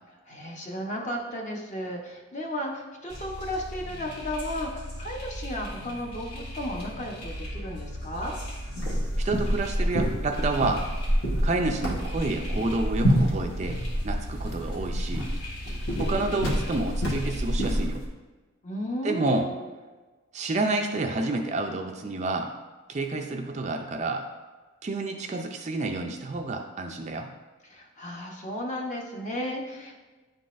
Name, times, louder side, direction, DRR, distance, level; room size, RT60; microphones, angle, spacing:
voice 1, 0.3-8.4 18.6-19.7 27.7-29.9, left 1 dB, 35° left, 0 dB, 0.8 m, -34 dB
sound 1, 3.1-17.9, equal, 85° left, 1.8 m, -38 dB
sound 2, 8.8-18.1, equal, 65° left, 1.3 m, -28 dB
voice 2, 9.2-10.9 11.4-15.3 16.0-18.1 19.0-19.5 20.3-22.5 22.9-24.3 24.8-27.3, right 2 dB, 30° right, 3 dB, 0.3 m, -29 dB
9.9 x 3.9 x 2.5 m, 1.3 s
head